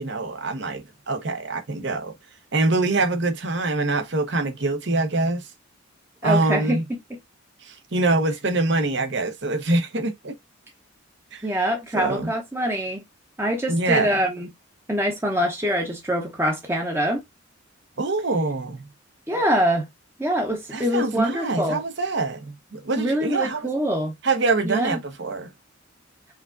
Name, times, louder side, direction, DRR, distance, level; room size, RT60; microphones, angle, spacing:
voice 1, 0.0-2.1 2.5-5.5 6.2-6.8 7.6-10.3 11.3-11.5 11.9-12.3 13.7-14.1 18.0-18.8 20.7-23.7 24.2-25.5, right 2 dB, 55° right, 0.9 m, -24 dB
voice 2, 6.2-7.2 11.4-13.0 13.4-14.5 14.9-17.2 19.3-19.9 20.2-21.8 22.9-24.1 24.7-25.0, equal, 10° right, 0.7 m, -24 dB
4.9 x 3.5 x 2.5 m
head